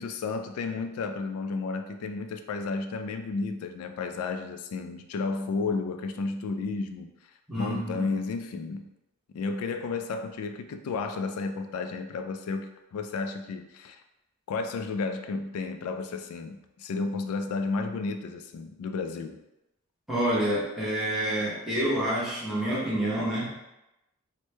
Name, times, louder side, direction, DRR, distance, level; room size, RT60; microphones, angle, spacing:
voice 1, 0.0-7.1 7.6-8.9 9.3-14.0 14.5-19.4, left 4 dB, 85° left, 12 dB, 0.3 m, -32 dB
voice 2, 7.5-8.1 20.1-23.5, right 1 dB, ahead, -9 dB, 0.9 m, -28 dB
3.1 x 2.1 x 3.1 m, 0.92 s
head